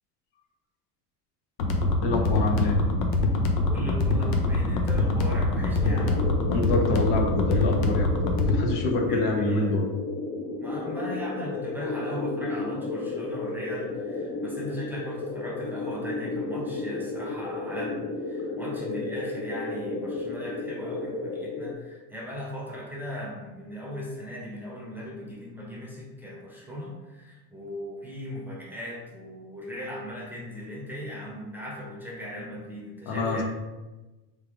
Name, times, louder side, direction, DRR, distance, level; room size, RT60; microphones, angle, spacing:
sound 1, 1.6-8.6, left 2 dB, 85° left, 0.9 m, -24 dB
voice 1, 2.0-2.8 6.5-8.1 8.5-9.9 33.1-33.4, left 2 dB, 55° left, 2 dB, 0.9 m, -26 dB
voice 2, 3.7-6.2 9.0-9.8 10.6-33.4, left 1 dB, 5° right, -4 dB, 0.8 m, -38 dB
sound 2, 5.8-21.7, left 3 dB, 25° left, 0.4 m, -33 dB
3.7 x 3.3 x 3.6 m, 1.1 s
supercardioid pair, 120°, 50 cm